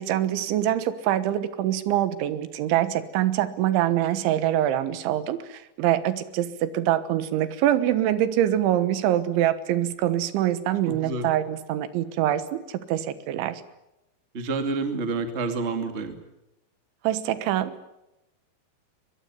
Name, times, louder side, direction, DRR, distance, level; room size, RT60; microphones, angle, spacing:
voice 1, 0.0-13.6 17.0-17.7, right 12 dB, 85° right, 13 dB, 3.7 m, -24 dB
voice 2, 10.8-11.3 14.3-16.1, right 3 dB, 25° right, 7 dB, 1.7 m, -28 dB
23.0 x 22.0 x 9.7 m, 0.92 s
omnidirectional pair, 5.2 m